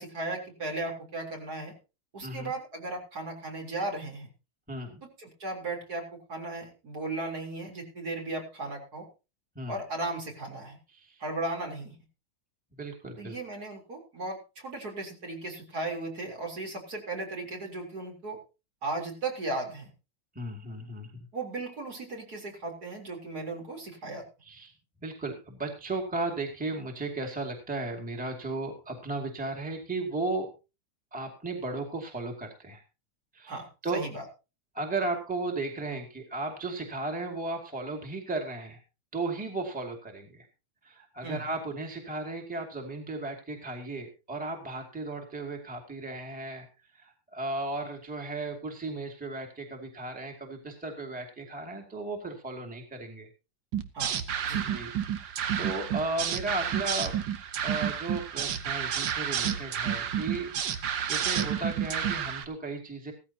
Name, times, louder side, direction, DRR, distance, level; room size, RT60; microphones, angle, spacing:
voice 1, 0.0-1.7 2.1-4.3 5.2-9.1 9.7-10.8 11.2-12.0 13.2-18.4 18.8-19.9 21.3-24.2 33.5-34.3 41.2-41.4 53.9-54.2 54.4-54.7, right 2 dB, 45° right, 2 dB, 4.2 m, -36 dB
voice 2, 2.2-2.5 4.7-5.0 9.6-9.8 10.9-11.2 12.7-13.3 20.3-21.3 24.4-24.7 25.0-30.5 31.1-32.8 33.3-34.0 34.7-38.8 39.1-40.5 40.8-46.7 46.9-53.3 54.7-55.3 55.6-57.2 57.6-63.1, right 2 dB, 5° right, 2 dB, 2.3 m, -35 dB
sound 1, 53.7-62.4, right 9 dB, 65° right, 1.8 m, -30 dB
16.5 x 14.5 x 2.8 m, 0.30 s
omnidirectional pair, 2.2 m